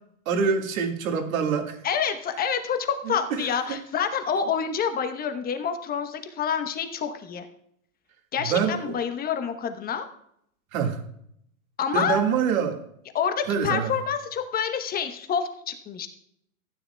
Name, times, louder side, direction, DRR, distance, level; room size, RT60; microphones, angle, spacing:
voice 1, 0.3-1.8 3.1-3.8 8.4-9.0 10.7-11.0 11.9-12.8 13.5-13.9, right 6 dB, 70° right, 4 dB, 1.9 m, -25 dB
voice 2, 1.8-7.5 8.3-10.0 11.8-12.2 13.1-16.1, left 7 dB, 20° left, 8 dB, 1.0 m, -27 dB
15.5 x 9.4 x 2.2 m, 0.71 s
hypercardioid pair, 125°, 43 cm